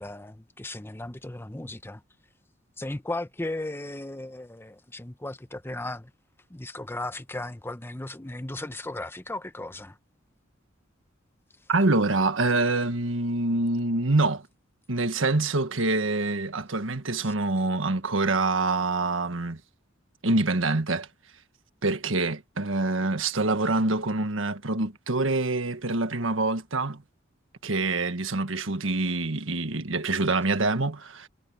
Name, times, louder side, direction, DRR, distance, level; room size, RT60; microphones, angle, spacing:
voice 1, 0.0-2.0 2.8-6.1 6.5-10.0 17.2-17.3, left 2 dB, 10° left, 0.9 m, -36 dB
voice 2, 11.7-14.4 14.9-19.6 20.2-21.1 21.8-27.0 27.6-31.3, right 2 dB, 80° right, 1.5 m, -25 dB
head